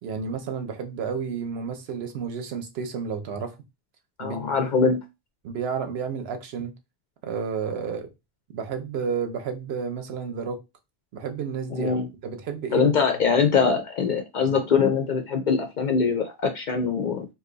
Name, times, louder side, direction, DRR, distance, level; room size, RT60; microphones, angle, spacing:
voice 1, 0.0-3.6 4.2-4.9 5.4-6.7 7.2-8.1 8.5-10.6 11.1-12.0 12.2-12.9 14.4-14.6, right 6 dB, 70° right, 0.8 m, -31 dB
voice 2, 4.2-5.0 11.7-12.1 12.7-17.3, left 5 dB, 60° left, 0.5 m, -23 dB
2.6 x 2.3 x 3.8 m
omnidirectional pair, 1.1 m